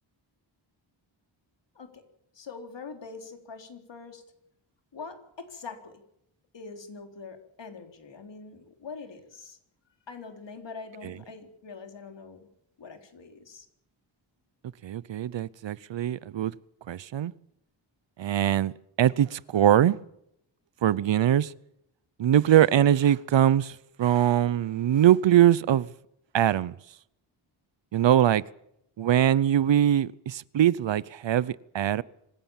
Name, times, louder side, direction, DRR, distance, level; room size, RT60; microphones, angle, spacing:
voice 1, 2.3-4.2 4.9-6.0 6.5-9.6 10.1-12.5 12.8-13.7, left 4 dB, 60° left, 4.0 m, -43 dB
voice 2, 14.8-16.5 16.9-17.3 18.2-18.7 19.0-20.0 20.8-21.5 22.2-25.9 26.3-26.8 27.9-28.4 29.0-32.0, right 11 dB, 65° right, 0.8 m, -22 dB
26.0 x 16.0 x 7.3 m
wide cardioid pair, 115°, 47 cm